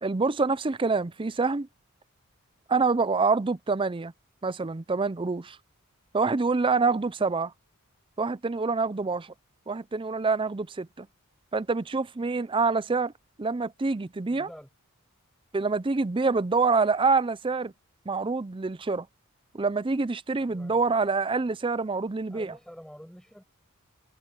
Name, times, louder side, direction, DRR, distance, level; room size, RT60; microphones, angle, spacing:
voice 1, 0.0-1.7 2.7-4.1 4.4-5.6 6.1-7.5 8.2-9.3 9.7-11.1 11.5-13.1 13.4-14.5 15.5-17.7 18.1-19.1 19.5-22.5, right 4 dB, 20° right, 0.5 m, -26 dB
voice 2, 14.3-14.7 20.4-20.8 22.3-23.4, equal, 5° left, 5.6 m, -47 dB
head